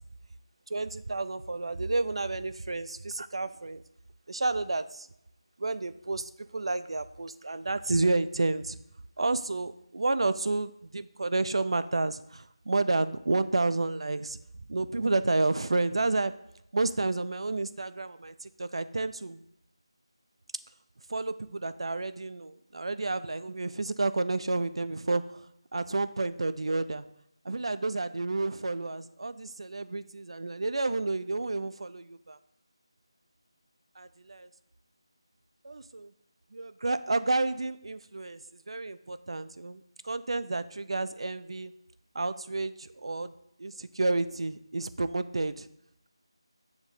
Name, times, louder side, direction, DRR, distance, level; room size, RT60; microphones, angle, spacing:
voice 1, 0.7-3.8 4.3-5.1 5.6-8.8 9.2-14.4 14.7-16.3 16.7-19.4 21.1-27.0 27.4-32.4 34.0-34.5 35.6-36.1 36.5-41.7 42.1-43.3 43.6-45.7, right 3 dB, 70° right, 13 dB, 0.3 m, -30 dB
7.2 x 2.7 x 4.8 m, 0.79 s
figure-of-eight pair, 165°, 3 cm